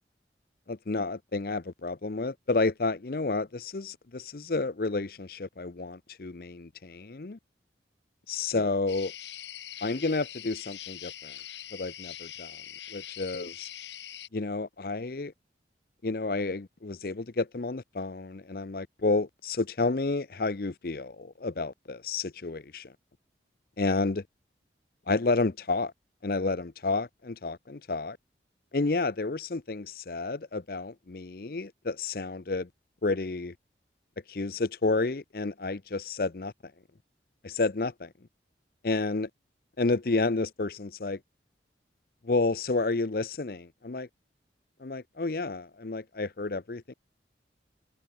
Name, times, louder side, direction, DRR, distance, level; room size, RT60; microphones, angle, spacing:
voice 1, 0.7-7.4 8.3-9.1 9.8-11.3 11.7-12.6 12.9-13.7 14.3-15.3 16.0-22.9 23.8-24.2 25.1-25.9 26.2-28.2 28.7-32.7 33.0-33.5 34.3-36.5 37.4-38.1 38.8-39.3 39.8-41.2 42.2-44.1 44.8-46.9, left 3 dB, 50° left, 0.7 m, -30 dB
sound 1, 8.9-14.3, left 11 dB, 75° left, 2.5 m, -43 dB
head